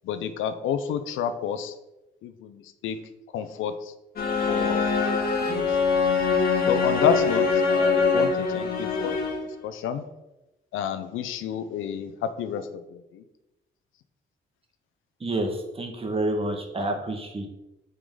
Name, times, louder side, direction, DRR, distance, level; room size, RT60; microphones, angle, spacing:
voice 1, 0.0-1.7 2.2-3.0 3.3-3.9 4.5-4.9 5.4-5.9 6.7-9.3 9.6-10.1 10.7-13.2 16.8-16.9, left 8 dB, 85° left, 10 dB, 0.7 m, -30 dB
sound 1, 4.2-9.6, left 5 dB, 50° left, 2.2 m, -23 dB
voice 2, 15.2-17.5, right 1 dB, 30° right, 3 dB, 1.6 m, -28 dB
9.3 x 5.1 x 3.8 m, 0.98 s
cardioid pair, 90°, 20 cm